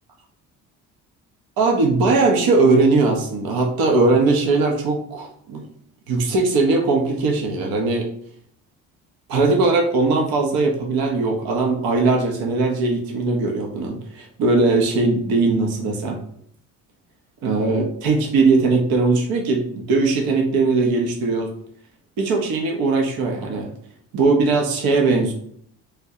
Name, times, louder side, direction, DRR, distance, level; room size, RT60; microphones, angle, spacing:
voice 1, 1.6-5.6 6.1-8.1 9.3-16.2 17.4-21.5 22.2-23.7 24.1-25.3, right 3 dB, 70° right, 2 dB, 0.8 m, -19 dB
3.5 x 2.3 x 2.8 m, 0.64 s
supercardioid pair, 60°, 37 cm